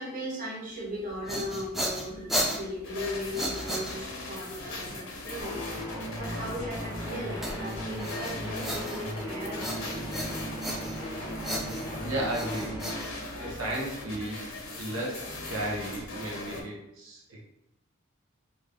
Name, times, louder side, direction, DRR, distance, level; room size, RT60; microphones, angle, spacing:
voice 1, 0.0-10.3, equal, 40° right, -4 dB, 0.7 m, -38 dB
sound 1, 1.0-4.4 7.4-9.2 9.6-11.1 11.4-13.7, equal, ahead, 0.3 m, -35 dB
sound 2, 2.8-16.6, left 2 dB, 75° left, 0.8 m, -40 dB
sound 3, 5.4-13.0, equal, 20° right, 1.1 m, -37 dB
voice 2, 12.0-17.4, right 1 dB, 75° right, -2 dB, 0.8 m, -35 dB
2.6 x 2.5 x 3.3 m, 0.82 s
head